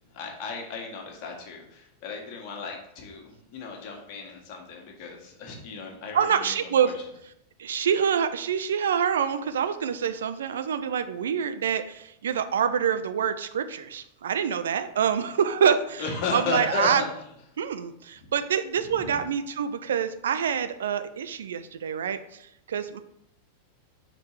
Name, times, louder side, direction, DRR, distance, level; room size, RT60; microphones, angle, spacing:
voice 1, 0.1-7.0 16.0-17.2 18.9-19.2, left 5 dB, 40° left, 1 dB, 1.5 m, -34 dB
voice 2, 6.1-6.9 7.6-16.0 16.3-17.0 17.6-22.2 22.7-23.0, right 7 dB, 65° right, 10 dB, 0.4 m, -26 dB
5.1 x 4.2 x 4.7 m, 0.76 s
figure-of-eight pair, 90°, 0 cm